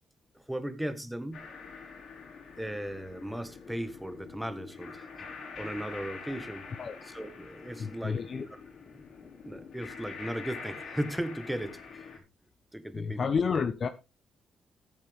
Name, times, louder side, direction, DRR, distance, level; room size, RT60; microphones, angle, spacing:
voice 1, 0.3-1.5 2.6-5.3 5.6-6.7 7.0-8.6 8.9-9.0 9.4-12.2 12.7-13.3, right 1 dB, 5° right, 1.5 m, -37 dB
sound 1, 1.3-12.2, left 5 dB, 65° left, 3.8 m, -45 dB
voice 2, 7.8-8.5 12.9-13.9, left 5 dB, 45° left, 0.9 m, -30 dB
14.0 x 8.5 x 3.5 m
cardioid pair, 90°, 0 cm